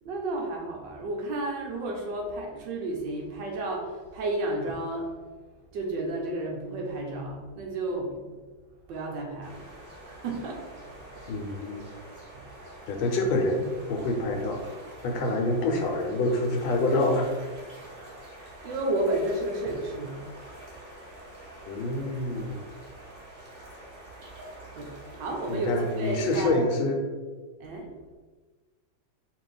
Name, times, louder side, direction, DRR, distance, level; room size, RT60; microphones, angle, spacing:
voice 1, 0.0-5.1 5.7-8.4 8.9-11.2 12.3-12.5 18.6-20.2 24.7-26.7 27.6-27.9, right 2 dB, 75° right, 0 dB, 1.4 m, -32 dB
sound 1, 9.4-26.4, right 1 dB, 35° right, 1.2 m, -46 dB
voice 2, 11.3-11.8 12.9-14.7 15.0-17.3 21.6-22.6 25.5-27.0, left 2 dB, 80° left, 2 dB, 1.5 m, -27 dB
4.6 x 2.6 x 4.0 m, 1.4 s
omnidirectional pair, 2.1 m